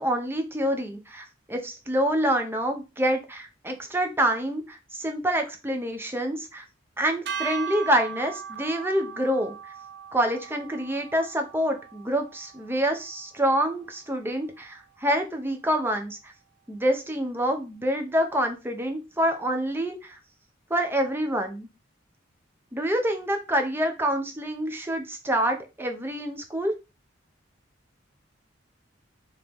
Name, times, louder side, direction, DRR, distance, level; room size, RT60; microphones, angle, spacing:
voice 1, 0.0-6.6 7.0-9.5 10.1-16.2 16.7-20.2 20.7-21.7 22.7-26.7, right 1 dB, 10° right, 4 dB, 0.8 m, -27 dB
sound 1, 7.3-13.6, right 7 dB, 60° right, 0.6 m, -38 dB
4.9 x 2.8 x 3.5 m, 0.28 s
head